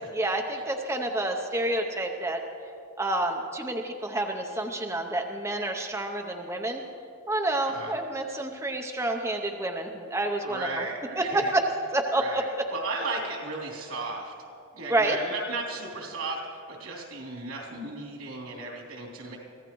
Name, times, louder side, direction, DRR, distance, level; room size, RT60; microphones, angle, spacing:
voice 1, 0.1-2.4 3.0-6.8 7.3-10.7 11.2-11.6 11.9-12.6 14.9-15.2, right 1 dB, 15° right, 3 dB, 0.6 m, -28 dB
voice 2, 10.4-11.5 12.1-14.3 14.7-19.4, right 3 dB, 85° right, -1 dB, 3.2 m, -35 dB
24.0 x 15.5 x 3.1 m, 2.7 s
head